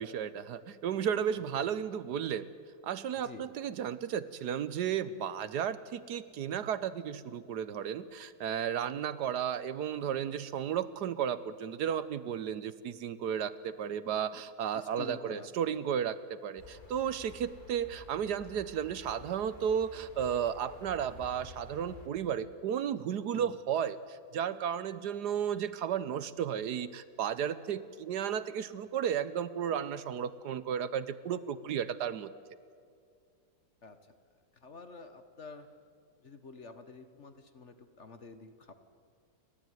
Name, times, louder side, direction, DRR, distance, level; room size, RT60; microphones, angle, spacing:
voice 1, 0.0-2.5 2.8-32.3, right 8 dB, 70° right, 15 dB, 1.3 m, -34 dB
voice 2, 14.7-15.5 23.3-23.5 33.8-34.2 34.6-35.7 36.2-38.7, left 4 dB, 45° left, 9 dB, 1.4 m, -48 dB
sound 1, 16.6-22.1, left 2 dB, 25° left, 2.5 m, -52 dB
29.0 x 12.5 x 9.2 m, 2.3 s
omnidirectional pair, 1.9 m